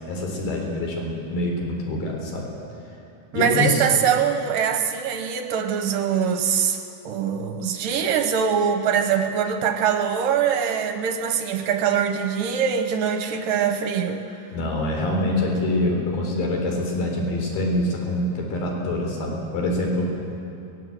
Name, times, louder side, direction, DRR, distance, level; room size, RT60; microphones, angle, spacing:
voice 1, 0.1-2.5 3.3-3.8 13.3-13.4 14.5-20.1, left 1 dB, 65° left, 1 dB, 5.4 m, -25 dB
voice 2, 3.3-14.2, right 7 dB, 70° right, 6 dB, 2.4 m, -23 dB
22.5 x 21.0 x 8.0 m, 2.7 s
omnidirectional pair, 4.6 m